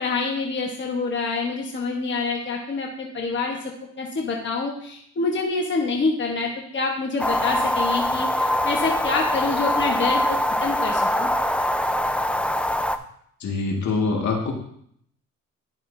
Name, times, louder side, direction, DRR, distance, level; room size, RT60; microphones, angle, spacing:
voice 1, 0.0-3.6 4.0-11.3, left 4 dB, 40° left, 0 dB, 1.3 m, -26 dB
sound 1, 7.2-13.0, left 1 dB, 5° left, 0.4 m, -23 dB
voice 2, 13.4-14.5, left 4 dB, 65° left, 0 dB, 1.9 m, -24 dB
11.0 x 6.1 x 2.7 m, 0.67 s
cardioid pair, 90°, 30 cm